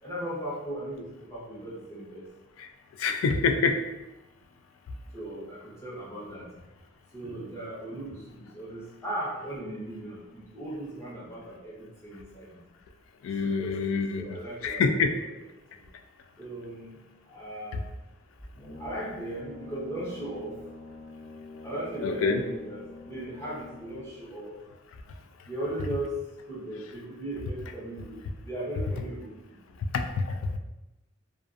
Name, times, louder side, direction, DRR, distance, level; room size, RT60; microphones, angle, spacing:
voice 1, 0.0-2.3 5.1-6.5 7.1-12.6 13.4-15.0 15.8-15.9 16.4-17.0 17.3-17.8 18.8-20.6 21.6-24.6 25.5-26.2 26.5-29.3 29.7-29.8, right 1 dB, 15° left, -8 dB, 0.8 m, -37 dB
voice 2, 3.0-3.8 13.2-14.2 14.6-15.1 22.0-22.4 29.9-30.6, left 4 dB, 80° left, 6 dB, 0.3 m, -26 dB
Brass instrument, 18.5-24.3, left 3 dB, 60° left, 1.2 m, -45 dB
2.4 x 2.3 x 2.5 m, 1.0 s
head